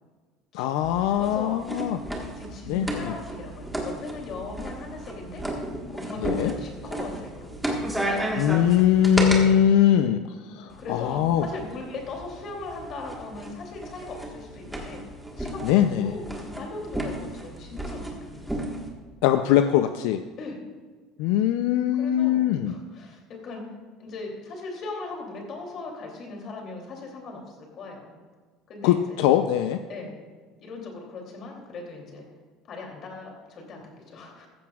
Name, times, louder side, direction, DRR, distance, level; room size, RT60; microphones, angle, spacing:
voice 1, 0.5-2.0 2.7-3.2 6.2-6.5 8.4-11.5 15.6-16.1 19.2-20.2 21.2-22.7 28.8-29.8, left 10 dB, 85° left, 8 dB, 0.5 m, -22 dB
sound 1, 0.8-9.4 10.7-18.9, right 1 dB, 5° right, 1.5 m, -34 dB
voice 2, 1.2-1.6 2.4-7.5 10.4-15.0 15.4-18.8 20.4-20.6 22.0-23.6 24.0-28.1 28.7-29.2 29.9-30.2 30.6-32.3 32.7-34.5, left 3 dB, 40° left, 1 dB, 2.9 m, -39 dB
14.5 x 14.5 x 2.4 m, 1.4 s
cardioid pair, 155°, 0 cm